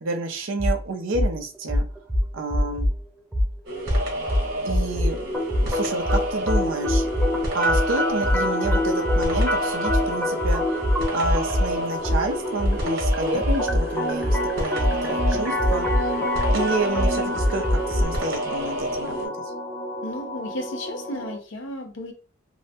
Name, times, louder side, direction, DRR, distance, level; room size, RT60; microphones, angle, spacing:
voice 1, 0.0-1.8 2.3-2.9 3.9-4.0 4.6-5.3 5.6-7.1 7.5-10.6 11.1-16.1 16.5-19.3, right 2 dB, 70° right, 4 dB, 0.5 m, -29 dB
sound 1, 0.6-0.8 1.1-1.3 1.7-3.0 3.3-3.5 3.9-5.1 5.5-5.7 6.0-7.3 7.7-11.7 12.0-18.0, equal, 10° right, 0.3 m, -23 dB
sound 2, 3.7-19.3, right 1 dB, 50° right, 1.1 m, -30 dB
sound 3, 5.3-21.3, left 1 dB, 10° left, 0.8 m, -28 dB
voice 2, 20.0-22.1, left 1 dB, 65° left, 4 dB, 0.6 m, -33 dB
2.7 x 2.1 x 2.7 m, 0.37 s
head